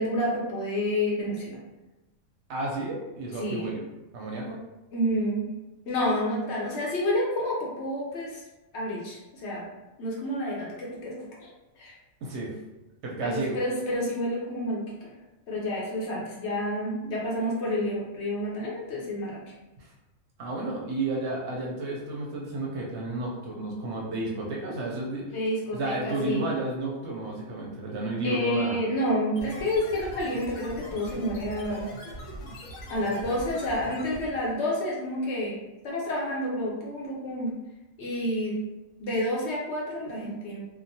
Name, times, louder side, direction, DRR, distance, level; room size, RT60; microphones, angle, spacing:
voice 1, 0.0-1.6 3.4-3.7 4.9-5.4 5.9-8.4 8.7-9.6 10.0-11.5 11.8-11.9 13.2-15.1 15.5-19.4 25.3-26.5 28.2-31.9 32.9-35.6 35.8-37.5 38.0-38.6 39.0-40.6, left 1 dB, 65° left, -4 dB, 0.9 m, -29 dB
voice 2, 2.5-3.8 4.1-4.6 12.2-12.5 13.0-13.6 19.8-19.9 20.4-25.3 25.7-28.8, right 2 dB, 65° right, -2 dB, 0.8 m, -32 dB
sound 1, 29.4-34.5, equal, 85° left, 1.1 m, -41 dB
2.9 x 2.1 x 2.6 m, 1.0 s
omnidirectional pair, 1.4 m